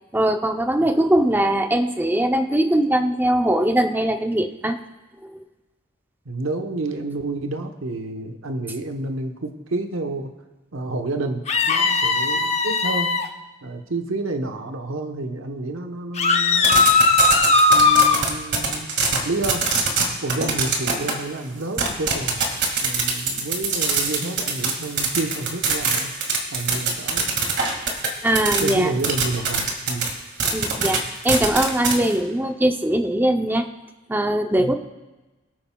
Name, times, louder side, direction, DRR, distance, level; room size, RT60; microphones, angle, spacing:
voice 1, 0.1-4.8 5.2-5.4 28.2-28.9 30.5-33.6 34.1-34.7, right 1 dB, 10° right, 6 dB, 0.5 m, -21 dB
voice 2, 6.2-10.3 10.7-13.1 13.6-16.9 17.7-19.7 20.2-26.1 26.5-27.3 28.6-30.4 34.5-34.7, right 2 dB, 85° right, 5 dB, 1.0 m, -29 dB
sound 1, 11.5-13.3 16.2-18.2, left 4 dB, 35° left, 0.7 m, -18 dB
sound 2, 16.6-19.2 19.4-20.0 20.3-21.1 21.8-28.7 29.0-30.1 30.4-31.0 31.2-32.1, right 5 dB, 55° right, 2.0 m, -23 dB
24.5 x 8.8 x 2.3 m, 1.1 s
head